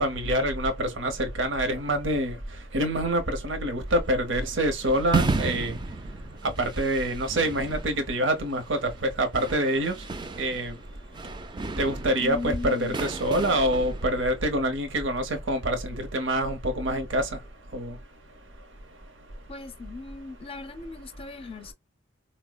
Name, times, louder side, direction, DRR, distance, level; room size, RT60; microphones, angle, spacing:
voice 1, 0.0-2.3 2.7-5.7 6.6-10.0 10.4-10.7 11.8-17.3 17.7-17.9, right 1 dB, 75° right, 0.7 m, -26 dB
sound 1, 3.9-14.4, right 3 dB, 25° right, 0.4 m, -34 dB
voice 2, 12.2-13.0 19.5-21.7, left 4 dB, 30° left, 0.5 m, -37 dB
4.2 x 2.0 x 2.3 m
head